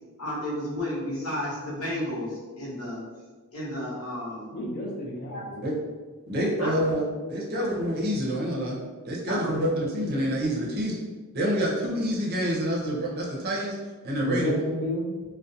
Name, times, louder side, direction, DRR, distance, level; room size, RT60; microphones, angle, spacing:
voice 1, 0.2-3.0 3.5-4.5 5.3-5.5 6.6-6.7 7.5-7.7 9.3-9.5, left 1 dB, 70° left, -7 dB, 0.9 m, -32 dB
voice 2, 4.5-5.7 14.2-15.1, equal, 45° left, -3 dB, 0.5 m, -31 dB
voice 3, 6.3-7.0 7.3-8.8 9.1-11.0 11.3-13.8 14.0-14.5, equal, 45° right, -4 dB, 0.6 m, -27 dB
2.4 x 2.1 x 2.6 m, 1.3 s
head